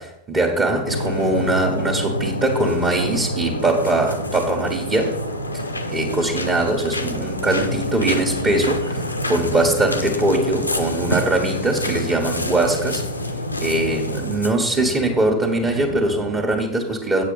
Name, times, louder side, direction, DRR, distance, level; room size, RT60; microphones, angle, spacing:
voice 1, 0.0-5.2 5.9-13.0 13.6-17.2, right 2 dB, 25° right, 0 dB, 1.6 m, -21 dB
sound 1, 0.9-14.5, left 1 dB, 85° left, 0.9 m, -27 dB
sound 2, 2.8-16.6, right 6 dB, 55° right, 0.9 m, -36 dB
8.5 x 7.3 x 5.6 m, 0.81 s
figure-of-eight pair, 90°, 0 cm